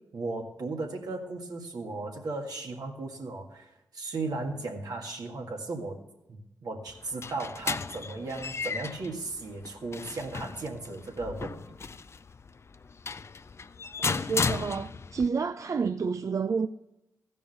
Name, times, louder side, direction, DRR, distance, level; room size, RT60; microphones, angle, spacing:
voice 1, 0.1-6.0 6.3-11.8, right 3 dB, 70° right, 1.8 m, -36 dB
sound 1, 6.9-15.3, left 4 dB, 40° left, 0.4 m, -35 dB
voice 2, 14.0-16.7, right 5 dB, 50° right, 0.4 m, -29 dB
14.5 x 5.4 x 6.5 m
cardioid pair, 50°, 7 cm